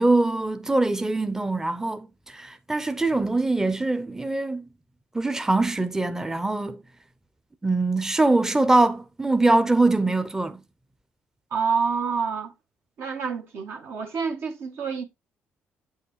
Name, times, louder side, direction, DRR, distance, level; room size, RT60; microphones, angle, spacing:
voice 1, 0.0-2.1 2.3-4.6 5.1-6.8 7.6-10.6, right 2 dB, 10° right, 0.6 m, -23 dB
voice 2, 11.5-12.5 13.0-15.0, right 5 dB, 65° right, 1.2 m, -27 dB
8.4 x 5.6 x 3.0 m
cardioid pair, 75°, 5 cm